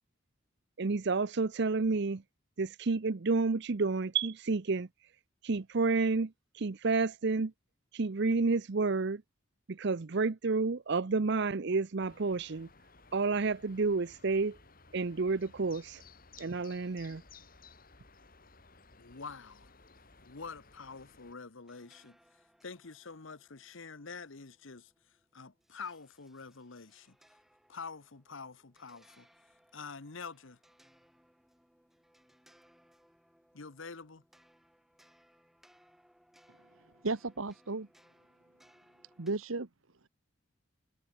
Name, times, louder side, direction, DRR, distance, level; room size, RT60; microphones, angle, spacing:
voice 1, 0.8-2.2 2.6-4.9 5.4-7.5 7.9-9.2 9.7-12.7 13.1-14.6 14.9-16.0 16.4-17.2, right 4 dB, 55° right, 0.6 m, -30 dB
sound 1, 12.0-21.3, left 4 dB, 45° left, 4.6 m, -58 dB
voice 2, 19.0-19.7 20.2-24.9 25.3-27.2 27.7-29.3 29.7-30.6 33.5-34.2, left 4 dB, 65° left, 1.1 m, -46 dB
sound 2, 21.6-39.3, equal, ahead, 5.2 m, -67 dB
voice 3, 37.0-37.9 39.2-39.7, right 3 dB, 75° right, 1.2 m, -34 dB
head